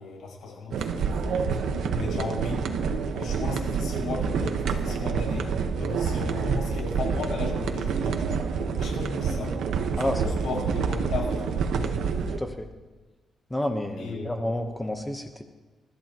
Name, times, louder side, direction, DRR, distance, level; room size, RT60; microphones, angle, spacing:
voice 1, 0.0-1.6 1.9-2.6 3.1-5.5 5.8-8.4 8.8-9.5 9.9-11.5 14.0-14.4, left 4 dB, 80° left, -2 dB, 6.4 m, -36 dB
sound 1, 0.7-12.4, right 5 dB, 85° right, 1.2 m, -27 dB
voice 2, 13.5-15.4, left 1 dB, 10° left, 4 dB, 1.0 m, -30 dB
29.0 x 13.5 x 3.0 m, 1.3 s
cardioid pair, 140°, 0 cm